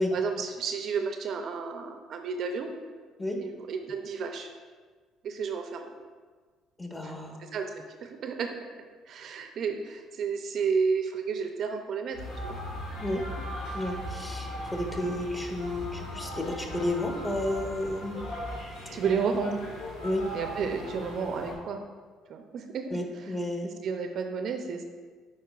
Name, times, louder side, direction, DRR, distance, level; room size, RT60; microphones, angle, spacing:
voice 1, 0.1-2.7 3.4-4.5 5.2-5.9 7.0-7.1 7.4-8.6 9.1-12.6 15.0-15.2 18.9-19.6 20.3-21.8 22.3-22.9 23.8-24.8, right 5 dB, 60° right, 5 dB, 0.5 m, -31 dB
voice 2, 6.8-7.4 13.0-13.2 13.7-18.2 20.0-20.3 22.9-23.7, left 1 dB, 20° left, 1 dB, 1.2 m, -31 dB
sound 1, 12.1-21.5, equal, 75° left, 1.4 m, -38 dB
9.3 x 4.3 x 2.4 m, 1.5 s
hypercardioid pair, 60°, 0 cm